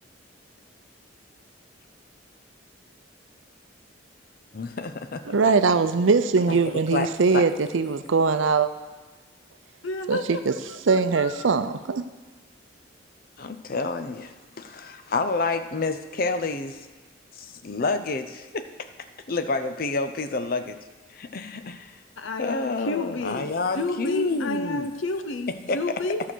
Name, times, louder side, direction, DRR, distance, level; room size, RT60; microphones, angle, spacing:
voice 1, 4.5-5.2 6.5-6.6 6.9-7.1 7.3-7.4 13.4-16.8 17.4-18.6 19.3-20.8 21.1-21.9 22.4-24.9 25.7-25.8, left 3 dB, 45° left, 8 dB, 0.6 m, -28 dB
voice 2, 5.3-8.7 10.1-10.5 10.9-12.0, right 4 dB, 80° right, 11 dB, 0.5 m, -21 dB
voice 3, 9.8-10.4 10.7-11.6 22.2-26.2, left 2 dB, 85° left, 9 dB, 0.7 m, -31 dB
11.5 x 5.7 x 6.2 m, 1.2 s
head